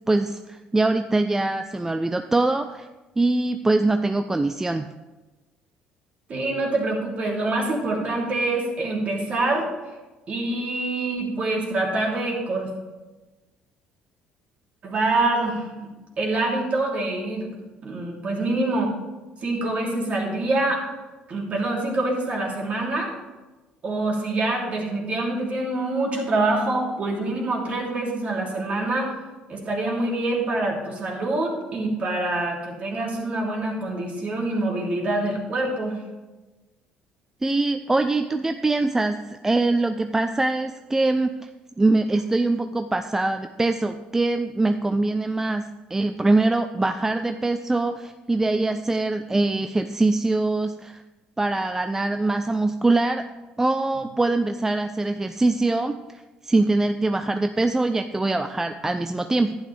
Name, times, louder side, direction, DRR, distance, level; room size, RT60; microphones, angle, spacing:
voice 1, 0.1-2.9 3.2-4.9 37.4-41.5 41.8-51.0 51.4-53.2 53.6-59.6, right 2 dB, 15° right, 8 dB, 0.4 m, -23 dB
voice 2, 6.3-9.7 10.3-12.7 14.8-15.9 16.2-17.5 17.8-18.9 19.4-20.8 21.3-23.1 23.8-29.1 29.5-36.0, right 2 dB, 45° right, -2 dB, 2.8 m, -25 dB
11.0 x 9.6 x 3.3 m, 1.2 s
cardioid pair, 95°, 3 cm